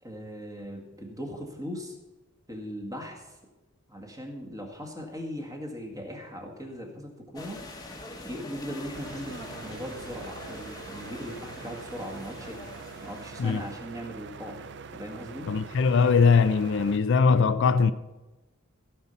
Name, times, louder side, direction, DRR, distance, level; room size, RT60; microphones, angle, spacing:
voice 1, 0.0-2.0 2.5-3.4 3.9-7.6 8.2-12.6 13.0-14.6 14.9-15.5, equal, 15° right, 1.9 m, -39 dB
sound 1, 7.3-13.8, left 2 dB, 20° left, 1.2 m, -44 dB
sound 2, 8.9-17.0, right 5 dB, 55° right, 0.5 m, -44 dB
voice 2, 15.5-17.9, left 5 dB, 60° left, 0.4 m, -21 dB
15.5 x 5.5 x 7.0 m
head